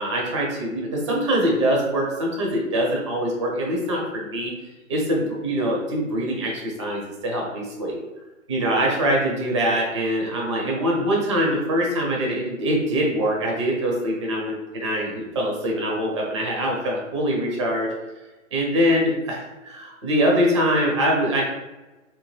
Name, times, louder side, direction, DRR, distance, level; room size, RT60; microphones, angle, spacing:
voice 1, 0.0-4.5 4.9-8.0 8.5-17.9 18.5-21.4, equal, 25° right, -1 dB, 0.4 m, -23 dB
2.8 x 2.1 x 3.0 m, 1.1 s
hypercardioid pair, 140°, 39 cm